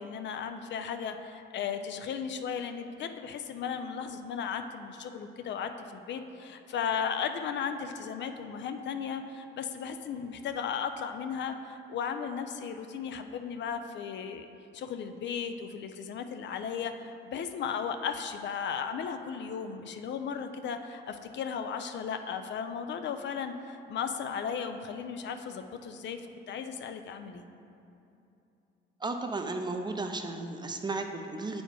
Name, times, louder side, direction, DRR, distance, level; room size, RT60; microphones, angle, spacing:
voice 1, 0.0-14.5 14.7-26.2 26.5-27.5, left 7 dB, 65° left, 8 dB, 0.5 m, -35 dB
voice 2, 29.0-31.6, right 3 dB, 20° right, 5 dB, 0.5 m, -34 dB
7.9 x 4.2 x 4.6 m, 2.8 s
cardioid pair, 90°, 20 cm